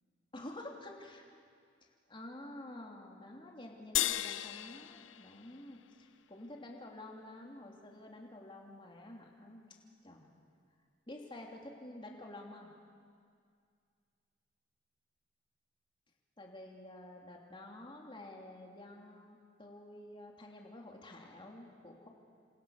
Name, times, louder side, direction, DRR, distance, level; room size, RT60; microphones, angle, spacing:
voice 1, 0.3-1.2 2.1-9.6 10.0-10.3 11.1-12.7 16.4-22.1, left 1 dB, 25° left, 0 dB, 3.1 m, -49 dB
sound 1, 3.9-6.5, left 13 dB, 75° left, 0.6 m, -37 dB
29.0 x 27.0 x 6.6 m, 2.2 s
head